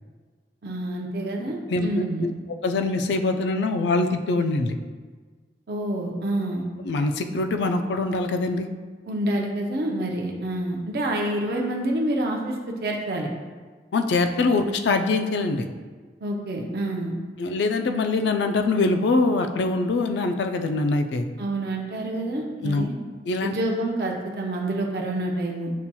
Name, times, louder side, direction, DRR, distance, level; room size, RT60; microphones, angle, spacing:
voice 1, 0.6-2.3 5.7-6.6 9.1-13.3 16.2-17.2 21.4-22.9 23.4-25.7, right 1 dB, 60° right, -1 dB, 0.5 m, -27 dB
voice 2, 1.7-2.3 2.6-4.8 6.8-8.7 13.9-15.7 17.4-21.3 22.6-22.8 23.3-23.6, left 3 dB, 80° left, 6 dB, 0.3 m, -23 dB
7.1 x 2.8 x 2.2 m, 1.5 s
head